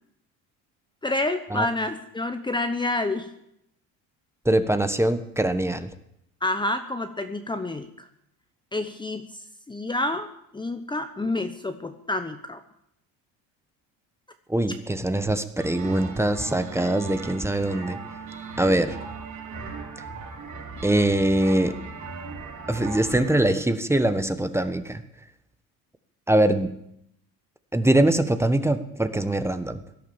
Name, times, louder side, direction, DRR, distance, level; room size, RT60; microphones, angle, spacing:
voice 1, 1.0-3.3 6.4-8.1 8.7-10.3 10.5-12.6, left 2 dB, 15° left, 7 dB, 1.1 m, -28 dB
voice 2, 4.4-5.9 14.5-18.0 18.6-19.0 20.8-21.7 22.7-25.0 26.3-26.7 27.7-29.8, right 1 dB, 5° right, 10 dB, 1.3 m, -23 dB
sound 1, 15.6-23.5, right 4 dB, 50° right, 5.4 m, -38 dB
17.5 x 11.5 x 7.2 m, 0.77 s
cardioid pair, 105°, 36 cm